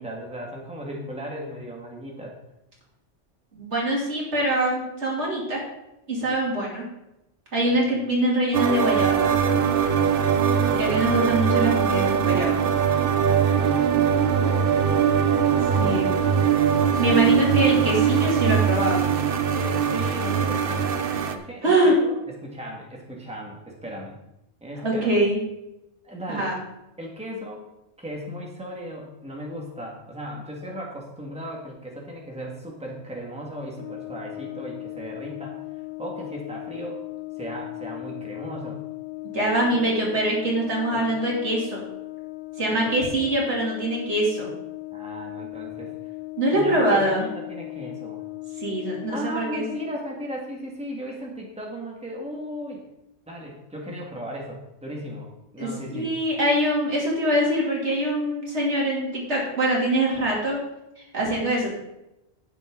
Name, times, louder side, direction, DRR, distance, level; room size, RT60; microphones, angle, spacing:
voice 1, 0.0-2.4 13.0-14.9 15.5-16.6 19.5-24.2 24.6-25.2 26.0-26.5 27.0-27.6 28.0-37.0 37.4-38.8 39.7-40.1 40.9-41.1 42.8-42.9 44.9-45.9 46.5-48.2 49.1-52.8 53.3-55.3 55.5-56.2, equal, 5° right, -1 dB, 1.9 m, -36 dB
voice 2, 3.5-5.6 6.1-6.8 7.5-9.5 10.7-12.6 15.8-16.1 17.0-19.0 21.6-21.9 24.8-25.4 26.3-26.6 39.3-41.8 42.6-44.5 46.4-47.2 48.6-49.6 55.6-60.6 61.0-61.7, right 1 dB, 75° right, -3 dB, 3.3 m, -24 dB
sound 1, 8.5-21.3, right 7 dB, 55° right, 0.9 m, -21 dB
Brass instrument, 33.8-50.1, left 21 dB, 50° left, 0.8 m, -37 dB
10.5 x 9.3 x 3.9 m, 0.90 s
omnidirectional pair, 1.2 m